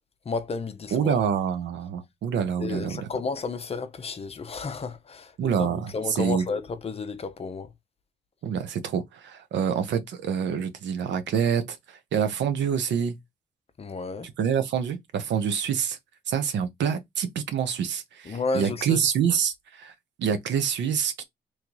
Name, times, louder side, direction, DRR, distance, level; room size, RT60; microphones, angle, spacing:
voice 1, 0.3-1.2 2.6-5.7 5.9-7.7 13.8-14.3 18.3-19.0, left 4 dB, 35° left, 0.7 m, -32 dB
voice 2, 0.9-3.1 5.4-6.4 8.4-13.2 14.4-16.0 16.3-21.2, right 7 dB, 80° right, 1.0 m, -26 dB
3.1 x 3.0 x 3.9 m
cardioid pair, 120°, 18 cm